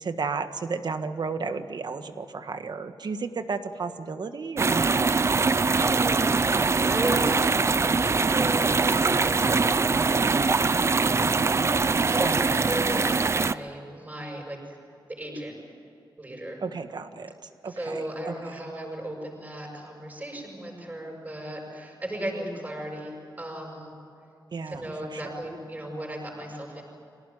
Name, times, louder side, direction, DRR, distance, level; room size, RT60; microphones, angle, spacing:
voice 1, 0.0-5.1 12.1-12.6 16.6-17.3 17.6-18.3 24.5-25.3, right 4 dB, 60° right, 8 dB, 1.5 m, -33 dB
sound 1, 4.6-13.5, right 4 dB, 35° right, 0.5 m, -23 dB
voice 2, 5.2-11.6 12.1-14.8 15.1-15.6 16.2-16.6 17.6-23.9 24.6-26.8, right 1 dB, 20° right, -1 dB, 7.1 m, -36 dB
25.5 x 18.0 x 9.5 m, 2.7 s
wide cardioid pair, 150°, 8 cm